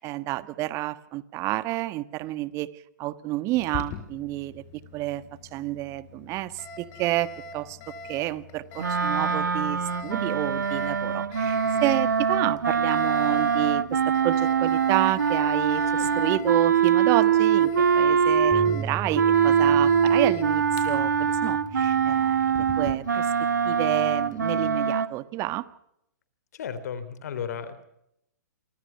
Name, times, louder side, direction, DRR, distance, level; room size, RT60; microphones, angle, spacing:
voice 1, 0.0-4.6 4.9-5.2 5.5-7.8 8.1-17.7 17.9-23.3 23.6-25.6, right 17 dB, 30° right, 15 dB, 1.4 m, -30 dB
Alarm, 3.6-22.9, left 4 dB, 30° left, 5.2 m, -43 dB
sound 1, 8.8-18.8 19.1-25.1, right 7 dB, 75° right, 2.0 m, -23 dB
sound 2, 18.5-24.8, right 4 dB, 5° right, 2.4 m, -39 dB
voice 2, 26.5-27.8, left 7 dB, 60° left, 14 dB, 3.3 m, -34 dB
28.5 x 24.0 x 5.7 m, 0.78 s
figure-of-eight pair, 120°, 10 cm